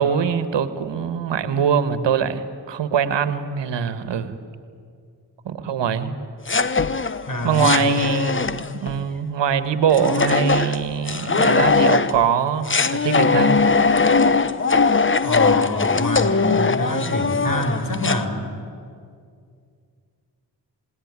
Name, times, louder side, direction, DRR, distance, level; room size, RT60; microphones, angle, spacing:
voice 1, 0.0-4.4 5.4-6.1 7.4-13.6, right 7 dB, 80° right, 12 dB, 1.5 m, -22 dB
sound 1, 6.5-9.0 9.9-12.2 12.7-18.2, left 4 dB, 30° left, 1.0 m, -20 dB
voice 2, 7.3-7.9 15.2-18.4, left 1 dB, 50° left, 6 dB, 5.2 m, -26 dB
27.0 x 19.0 x 9.7 m, 2.3 s
cardioid pair, 55°, 43 cm